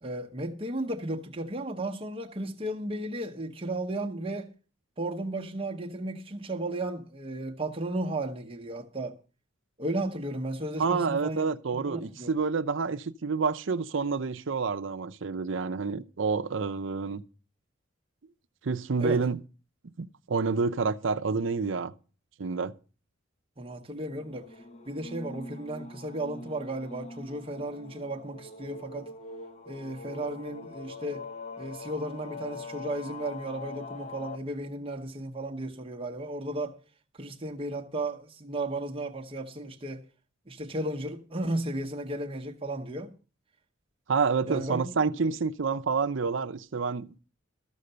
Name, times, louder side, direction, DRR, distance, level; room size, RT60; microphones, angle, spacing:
voice 1, 0.0-4.5 5.0-9.2 9.8-12.3 19.0-19.2 23.6-29.1 29.7-31.3 31.6-36.8 37.1-40.0 40.5-43.1 44.5-44.9 45.2-45.3, right 1 dB, 25° right, 0.8 m, -34 dB
voice 2, 10.8-17.2 18.6-19.4 20.0-21.9 22.4-22.7 44.1-47.2, right 5 dB, 65° right, 0.6 m, -28 dB
sound 1, 24.1-34.4, left 3 dB, 35° left, 1.1 m, -43 dB
13.5 x 6.4 x 6.6 m
head